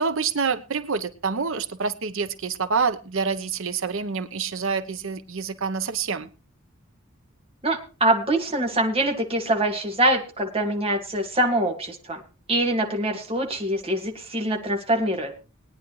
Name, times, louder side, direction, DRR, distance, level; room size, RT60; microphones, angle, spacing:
voice 1, 0.0-6.3, right 5 dB, 65° right, 11 dB, 0.9 m, -27 dB
voice 2, 7.6-12.2 12.5-15.3, right 1 dB, 30° right, 2 dB, 2.1 m, -24 dB
20.0 x 9.9 x 3.1 m, 0.33 s
head